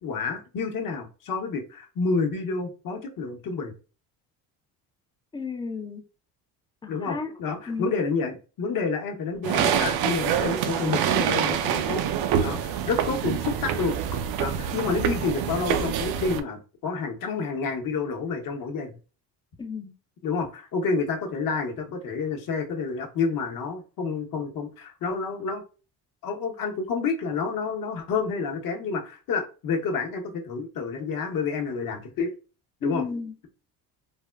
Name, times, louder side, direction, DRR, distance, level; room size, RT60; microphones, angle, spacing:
voice 1, 0.0-3.7 6.9-12.0 12.4-14.0 14.4-19.0 20.2-25.6 26.2-32.3 32.8-33.0, left 4 dB, 50° left, 0.8 m, -29 dB
voice 2, 5.3-6.0 6.8-7.3 7.7-8.0 19.6-19.9 32.8-33.5, left 4 dB, 10° left, 0.4 m, -33 dB
sound 1, 9.4-16.4, right 9 dB, 60° right, 0.5 m, -26 dB
3.4 x 2.1 x 2.2 m
supercardioid pair, 80°, 43 cm